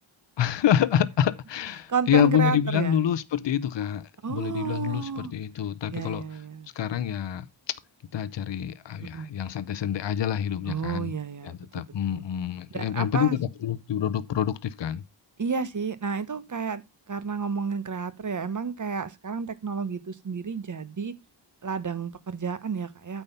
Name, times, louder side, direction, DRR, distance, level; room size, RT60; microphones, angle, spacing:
voice 1, 0.4-4.0 4.3-6.2 6.8-7.4 8.1-11.1 11.4-15.0, left 9 dB, 65° left, 0.8 m, -26 dB
voice 2, 1.9-3.0 4.2-5.3 5.9-6.7 9.0-9.3 10.6-12.2 12.7-13.4 15.4-21.1 21.6-23.2, right 5 dB, 40° right, 1.1 m, -31 dB
9.0 x 5.9 x 5.4 m
wide cardioid pair, 115°, 46 cm